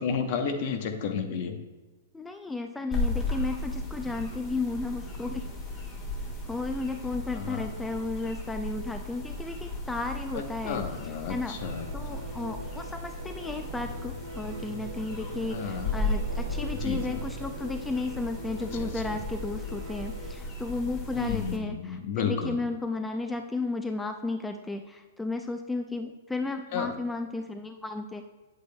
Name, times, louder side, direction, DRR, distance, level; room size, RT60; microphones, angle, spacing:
voice 1, 0.0-1.6 7.3-7.7 10.3-11.9 12.1-12.2 15.5-16.0 16.7-17.3 18.8-19.2 21.1-22.6 26.7-27.0, left 6 dB, 55° left, 6 dB, 0.9 m, -32 dB
voice 2, 2.2-5.5 6.4-28.2, left 3 dB, 10° left, 6 dB, 0.4 m, -34 dB
sound 1, 2.9-21.6, left 2 dB, 25° left, 1.6 m, -36 dB
sound 2, 11.5-20.3, right 2 dB, 75° right, 1.0 m, -42 dB
8.5 x 8.1 x 2.3 m, 1.2 s
hypercardioid pair, 120°, 0 cm